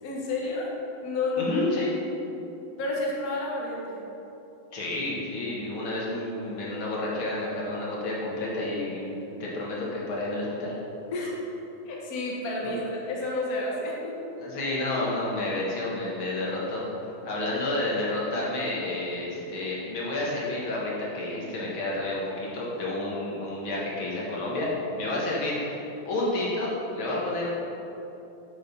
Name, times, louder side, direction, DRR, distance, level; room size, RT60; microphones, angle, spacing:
voice 1, 0.0-0.7 1.0-1.5 2.8-4.0 11.1-11.3 11.9-14.1, left 2 dB, 50° left, -3 dB, 1.6 m, -30 dB
voice 2, 1.4-1.9 4.7-10.7 12.6-12.9 14.4-16.8 17.2-24.7 25.0-27.7, left 2 dB, 80° left, -5 dB, 2.5 m, -30 dB
7.8 x 6.5 x 5.3 m, 3.0 s
omnidirectional pair, 2.2 m